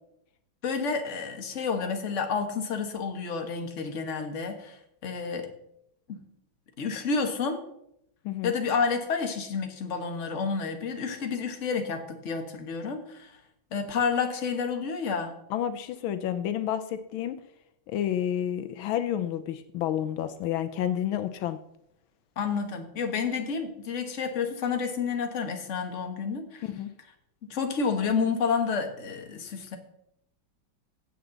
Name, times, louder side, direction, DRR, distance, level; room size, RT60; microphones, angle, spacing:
voice 1, 0.6-5.5 6.1-6.2 6.8-7.6 8.4-13.4 13.7-15.3 22.4-26.6 27.5-29.8, left 5 dB, 40° left, 5 dB, 1.6 m, -30 dB
voice 2, 15.5-17.4 17.9-21.6 26.7-26.9, left 10 dB, 80° left, 9 dB, 1.5 m, -30 dB
15.5 x 8.0 x 3.9 m, 0.78 s
omnidirectional pair, 2.2 m